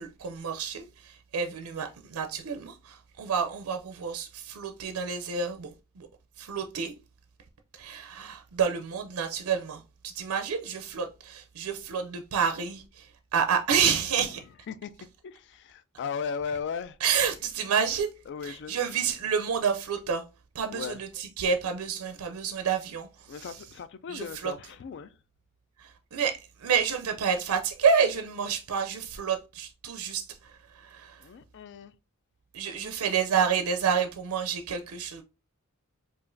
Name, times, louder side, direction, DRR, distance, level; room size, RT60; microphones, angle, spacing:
voice 1, 0.0-5.7 6.0-6.1 6.4-6.9 7.8-14.4 17.0-18.1 18.4-20.2 20.5-23.5 24.1-24.5 25.8-31.2 32.5-35.2, right 6 dB, 85° right, 0.4 m, -29 dB
voice 2, 15.2-17.0 18.3-18.9 20.7-21.0 23.3-25.1 31.2-31.9 32.7-33.1, left 6 dB, 55° left, 0.3 m, -37 dB
4.8 x 2.4 x 2.5 m
head